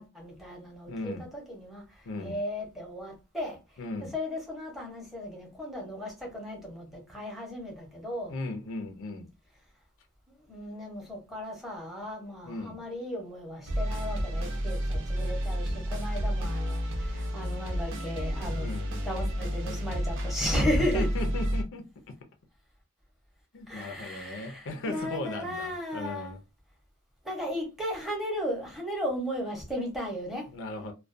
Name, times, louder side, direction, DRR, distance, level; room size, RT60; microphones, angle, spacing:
voice 1, 0.0-3.6 4.0-8.3 10.5-18.8 19.0-21.1 23.7-26.4 27.2-30.5, equal, ahead, 0.7 m, -35 dB
voice 2, 0.9-1.3 2.0-2.4 3.8-4.1 8.3-9.3 12.4-12.8 18.6-18.9 20.8-22.1 23.5-26.4 30.5-30.9, left 2 dB, 60° left, 0.5 m, -37 dB
sound 1, 13.7-21.6, equal, 60° right, 0.6 m, -31 dB
2.2 x 2.2 x 2.5 m
head